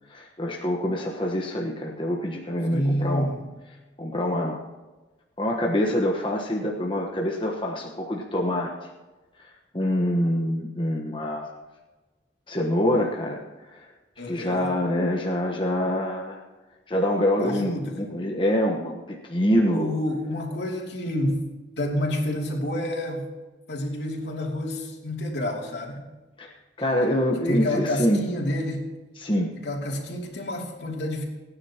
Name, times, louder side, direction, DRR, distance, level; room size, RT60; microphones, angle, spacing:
voice 1, 0.1-3.3 4.0-4.6 5.4-8.7 9.7-11.5 12.5-13.4 13.7-13.9 14.3-16.4 16.9-20.0 26.4-26.5 26.8-28.2 29.2-29.5, equal, 25° left, -1 dB, 1.2 m, -25 dB
voice 2, 2.7-3.5 14.2-14.7 17.4-18.2 19.7-21.4 21.8-23.3 23.7-26.0 27.5-28.9 29.6-31.2, left 1 dB, 70° left, 0 dB, 2.9 m, -29 dB
29.5 x 9.9 x 3.0 m, 1.2 s
head